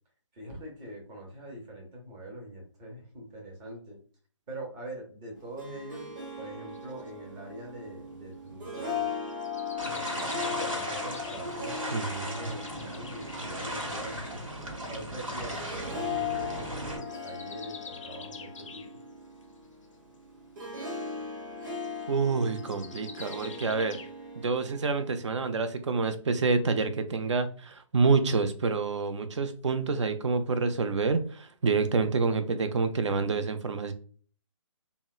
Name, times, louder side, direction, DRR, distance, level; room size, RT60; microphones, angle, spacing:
voice 1, 0.3-4.0 4.5-9.1 10.3-14.4 14.9-18.9, right 1 dB, 15° right, 0 dB, 0.6 m, -44 dB
Harp, 5.4-25.2, left 4 dB, 40° right, 0.9 m, -39 dB
sound 1, 6.7-7.1 8.7-14.0 16.1-16.5 16.7-19.0 19.4-19.5 19.8-20.0 21.6-24.1, left 5 dB, 70° left, 0.4 m, -48 dB
sound 2, 9.8-17.0, equal, 90° right, 0.9 m, -36 dB
voice 2, 11.9-12.5 22.1-24.0 24.3-33.9, right 4 dB, 65° right, 9 dB, 0.4 m, -28 dB
2.8 x 2.0 x 2.3 m, 0.43 s
figure-of-eight pair, 145°, 17 cm